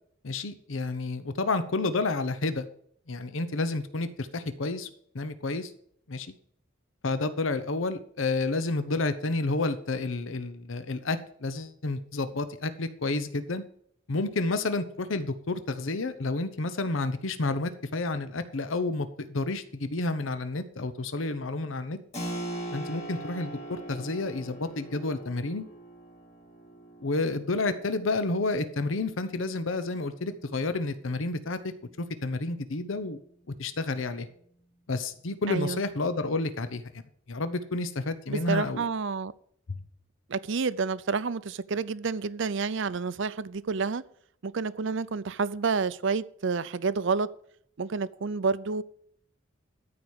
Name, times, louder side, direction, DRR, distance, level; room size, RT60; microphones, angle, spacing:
voice 1, 0.2-2.7 3.1-4.9 5.1-5.7 6.1-6.3 7.0-13.6 14.1-22.0 22.7-25.6 27.0-31.6 32.0-33.2 33.6-34.3 34.9-36.8 37.3-38.8 39.7-39.8, left 3 dB, 75° left, 0.8 m, -30 dB
Keyboard (musical), 22.1-32.5, right 1 dB, 35° left, 2.9 m, -42 dB
voice 2, 35.5-35.8 38.3-39.3 40.3-44.0 44.4-47.3 47.8-48.8, right 4 dB, 65° right, 0.6 m, -29 dB
13.5 x 4.8 x 7.2 m
head